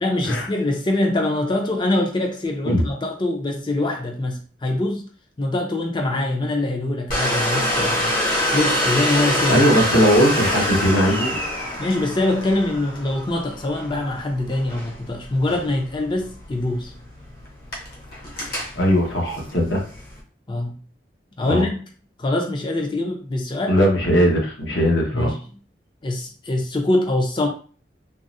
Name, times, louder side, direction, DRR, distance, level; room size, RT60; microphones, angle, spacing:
voice 1, 0.0-5.1 5.4-8.1 8.5-9.6 11.8-16.9 20.5-20.7 21.4-21.8 22.2-23.8 25.1-25.4 26.0-27.5, left 2 dB, 25° left, 2 dB, 0.4 m, -24 dB
Domestic sounds home sounds, 7.1-20.2, equal, 50° left, 0.8 m, -26 dB
voice 2, 9.5-11.4 18.8-19.8 21.4-21.7 23.7-25.3, equal, 80° left, -1 dB, 1.0 m, -19 dB
3.6 x 2.0 x 2.6 m, 0.41 s
head